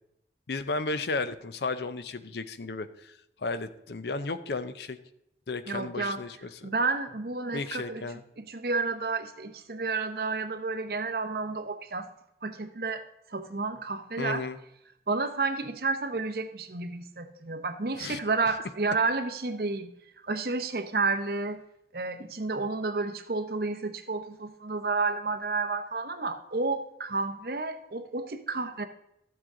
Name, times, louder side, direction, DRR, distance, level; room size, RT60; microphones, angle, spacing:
voice 1, 0.5-5.0 5.5-6.7 7.5-8.2 14.2-14.6 18.0-18.2, left 3 dB, 70° left, 12 dB, 0.6 m, -34 dB
voice 2, 5.7-6.2 6.6-8.1 8.4-12.1 12.4-14.4 15.1-19.9 20.2-21.6 21.9-28.9, right 3 dB, 55° right, 8 dB, 0.8 m, -31 dB
12.5 x 7.7 x 3.7 m, 0.82 s
head